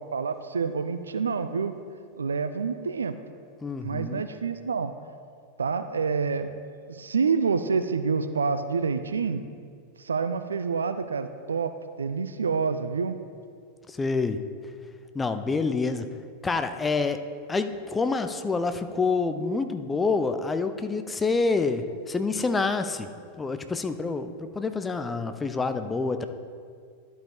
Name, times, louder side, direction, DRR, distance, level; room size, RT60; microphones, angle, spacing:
voice 1, 0.0-1.7 2.2-3.1 3.8-4.9 5.6-6.5 6.9-9.4 10.0-11.7 12.0-13.2, right 5 dB, 70° right, 10 dB, 0.3 m, -27 dB
voice 2, 3.6-4.2 13.9-14.4 15.1-16.1 16.4-17.2 17.5-23.1 23.4-26.3, left 4 dB, 15° left, 9 dB, 0.5 m, -27 dB
11.5 x 5.2 x 3.4 m, 2.1 s
figure-of-eight pair, 90°, 0 cm